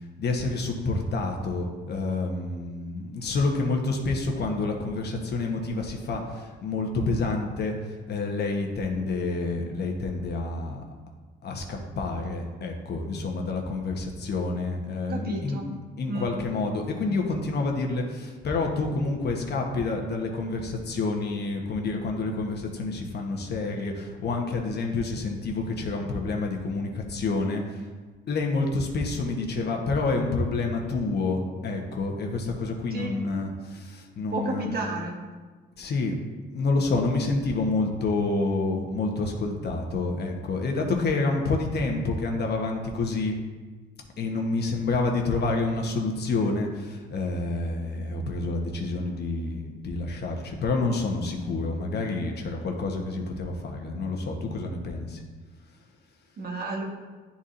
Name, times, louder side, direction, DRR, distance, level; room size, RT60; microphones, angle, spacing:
voice 1, 0.2-7.7 8.1-10.8 11.4-15.6 16.0-27.8 28.3-34.9 35.8-36.1 36.5-43.3 44.2-55.2, left 3 dB, 55° left, 1 dB, 1.1 m, -28 dB
voice 2, 15.1-15.7 16.1-16.3 32.9-33.2 34.3-35.2 56.4-56.8, right 2 dB, 50° right, 1 dB, 1.2 m, -32 dB
10.0 x 4.2 x 2.6 m, 1.4 s
cardioid pair, 90°, 20 cm